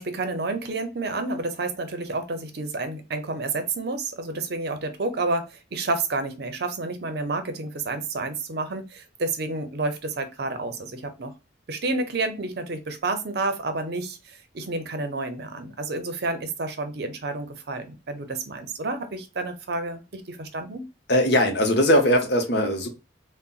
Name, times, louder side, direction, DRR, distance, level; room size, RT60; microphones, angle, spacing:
voice 1, 0.0-11.3 11.7-20.8, right 3 dB, 55° right, 8 dB, 0.6 m, -30 dB
voice 2, 21.1-22.9, equal, 60° left, 5 dB, 0.8 m, -20 dB
3.9 x 2.1 x 2.3 m, 0.28 s
head